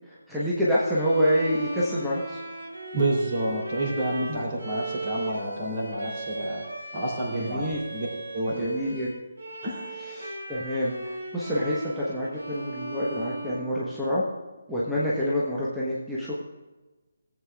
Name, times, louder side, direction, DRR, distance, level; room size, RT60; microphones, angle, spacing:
voice 1, 0.1-2.4 4.3-4.4 7.5-7.8 8.5-9.1 10.1-14.2 14.7-16.4, equal, ahead, -9 dB, 1.2 m, -27 dB
Bowed string instrument, 0.9-14.4, right 2 dB, 70° right, 2.9 m, -37 dB
voice 2, 2.9-6.7 6.9-8.1 8.3-8.8 9.6-9.9, right 1 dB, 35° right, -3 dB, 3.2 m, -29 dB
17.0 x 8.0 x 2.4 m, 1.2 s
figure-of-eight pair, 145°, 0 cm